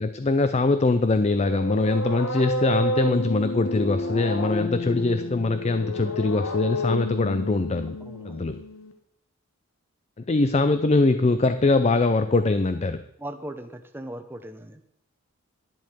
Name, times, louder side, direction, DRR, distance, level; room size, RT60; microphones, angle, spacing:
voice 1, 0.0-8.0 8.2-8.6 10.3-13.0, left 3 dB, 30° left, 11 dB, 0.4 m, -22 dB
sound 1, 1.1-8.9, left 1 dB, 75° left, 1.4 m, -30 dB
voice 2, 8.0-8.4 13.2-14.8, right 1 dB, 10° right, 7 dB, 0.9 m, -38 dB
11.5 x 10.5 x 5.1 m, 0.73 s
head